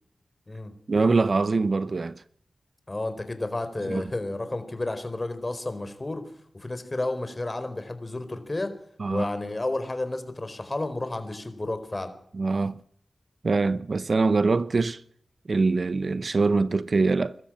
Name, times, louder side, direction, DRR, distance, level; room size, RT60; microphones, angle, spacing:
voice 1, 0.9-2.2 3.9-4.0 9.0-9.3 12.3-12.8 13.4-15.0 15.5-17.4, right 3 dB, 60° right, 0.8 m, -23 dB
voice 2, 2.9-6.2 6.6-8.7 9.1-12.1, left 2 dB, 30° left, 4.4 m, -31 dB
22.0 x 13.0 x 9.0 m
cardioid pair, 55°, 0 cm